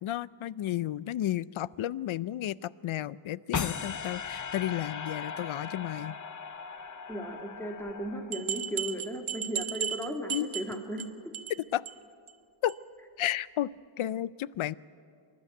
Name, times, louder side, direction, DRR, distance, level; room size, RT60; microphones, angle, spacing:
voice 1, 0.0-6.2 10.3-10.5 11.7-11.8 12.6-12.8 13.2-14.7, left 13 dB, 75° left, 20 dB, 0.5 m, -32 dB
sound 1, 3.5-8.7, left 6 dB, 40° left, 0.7 m, -38 dB
voice 2, 7.1-11.3, equal, 5° left, 3 dB, 2.0 m, -36 dB
sound 2, 7.9-8.0 8.3-11.1 11.3-11.6 11.9-12.0 12.3-12.4 12.7-12.8, right 9 dB, 80° right, 1.0 m, -35 dB
25.5 x 12.0 x 9.1 m, 2.3 s
wide cardioid pair, 130°, 49 cm